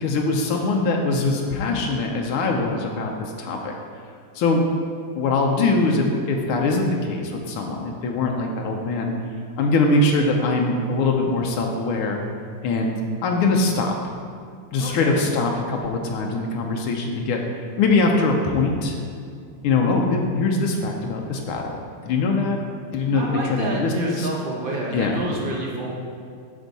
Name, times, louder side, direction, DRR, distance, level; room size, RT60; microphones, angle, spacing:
voice 1, 0.0-3.7 4.3-4.6 5.1-9.1 9.6-12.2 12.6-13.0 13.2-13.9 14.7-19.0 19.6-21.8 22.0-22.6 22.9-24.3 24.9-25.2, left 3 dB, 90° left, 1 dB, 1.6 m, -22 dB
voice 2, 14.8-15.3 23.1-25.9, right 1 dB, 70° right, -2 dB, 0.5 m, -29 dB
8.0 x 6.4 x 4.0 m, 2.3 s
omnidirectional pair, 2.3 m